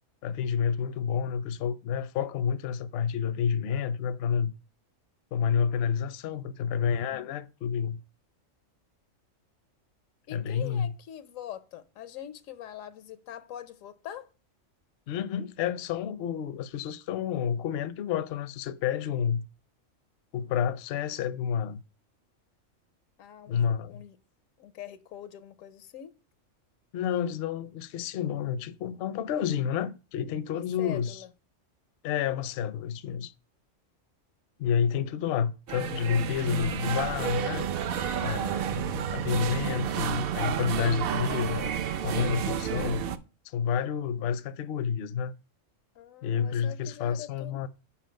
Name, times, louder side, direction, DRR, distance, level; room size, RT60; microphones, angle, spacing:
voice 1, 0.2-4.5 5.3-8.0 10.3-10.9 15.1-19.5 20.3-21.8 23.5-24.0 26.9-31.2 32.0-33.3 34.6-37.7 38.2-41.8 42.0-43.1 43.4-45.3 46.2-47.7, left 7 dB, 65° left, 0.7 m, -29 dB
voice 2, 10.3-14.3 23.2-24.2 24.6-26.1 30.5-31.3 45.9-47.6, left 11 dB, 85° left, 1.0 m, -43 dB
sound 1, 35.7-43.2, right 9 dB, 65° right, 0.6 m, -31 dB
5.8 x 4.8 x 5.1 m
omnidirectional pair, 1.4 m